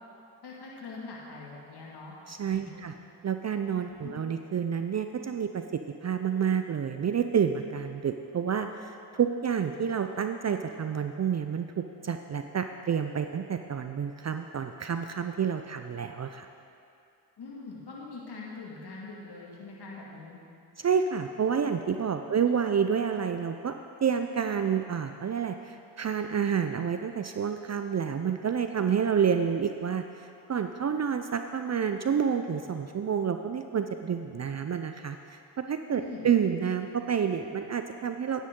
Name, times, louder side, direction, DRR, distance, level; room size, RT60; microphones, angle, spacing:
voice 1, 0.4-2.1 2.5-2.9 3.8-4.1 17.4-20.4 22.3-22.5 35.9-36.3, left 3 dB, 65° left, -4 dB, 2.1 m, -43 dB
voice 2, 2.3-2.9 3.2-16.5 20.8-23.7 24.0-35.4 35.7-38.5, right 7 dB, 40° right, 7 dB, 0.5 m, -29 dB
10.5 x 10.0 x 3.7 m, 2.5 s
supercardioid pair, 50°, 43 cm